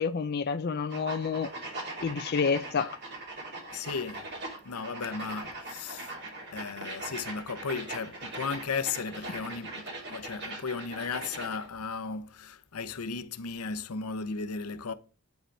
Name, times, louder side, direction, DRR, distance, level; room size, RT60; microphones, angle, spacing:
voice 1, 0.0-1.5 2.0-3.0, left 5 dB, 45° left, 0.5 m, -29 dB
sound 1, 0.9-11.7, right 2 dB, 50° right, 3.1 m, -40 dB
voice 2, 3.7-4.3 4.6-6.1 6.5-14.9, left 5 dB, 85° left, 0.7 m, -35 dB
9.2 x 5.1 x 3.3 m
head